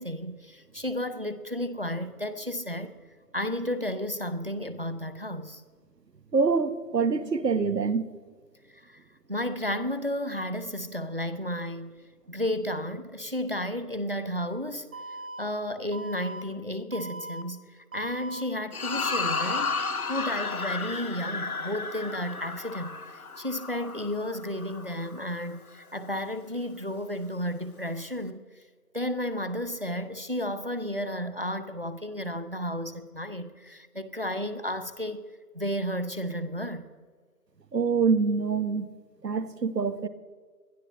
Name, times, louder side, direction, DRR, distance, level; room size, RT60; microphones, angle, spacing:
voice 1, 0.0-2.9 3.3-5.6 8.7-9.0 9.3-11.9 12.3-14.9 15.4-19.8 20.1-28.4 28.9-35.2 35.5-36.9, left 1 dB, 35° right, 12 dB, 0.6 m, -32 dB
voice 2, 6.3-8.1 37.7-38.9 39.2-40.1, right 5 dB, 85° right, 14 dB, 1.2 m, -25 dB
Alarm, 14.9-15.4 15.9-16.4 16.9-17.4 17.9-18.4 18.9-19.4, right 2 dB, 55° right, 1.4 m, -39 dB
sound 1, 18.7-25.3, left 4 dB, 60° left, 1.0 m, -33 dB
21.5 x 12.5 x 3.0 m, 1.6 s
figure-of-eight pair, 175°, 48 cm